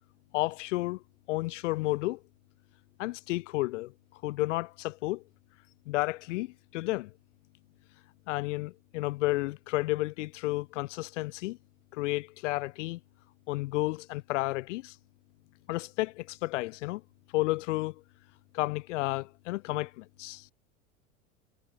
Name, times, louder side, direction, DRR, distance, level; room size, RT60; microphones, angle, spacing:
voice 1, 0.3-1.0 1.3-2.2 3.0-3.9 4.2-5.2 5.9-7.1 8.3-11.6 11.9-13.0 13.5-15.0 15.7-17.0 17.3-17.9 18.5-20.5, left 20 dB, 60° left, 1.1 m, -31 dB
figure-of-eight pair, 80°, 42 cm